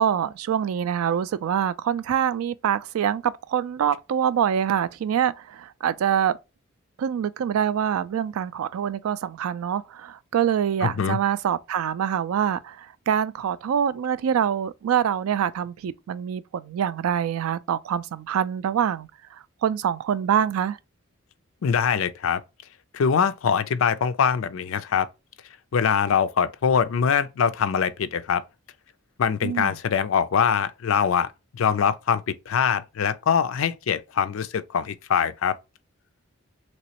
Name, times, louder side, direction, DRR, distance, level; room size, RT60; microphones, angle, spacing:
voice 1, 0.0-6.4 7.0-19.1 19.6-20.8 29.4-29.8, right 8 dB, 90° right, 0.3 m, -25 dB
voice 2, 10.8-11.2 21.6-22.4 22.9-25.1 25.7-28.4 29.2-31.3 31.5-35.5, left 7 dB, 70° left, 0.4 m, -23 dB
3.1 x 3.0 x 2.8 m
head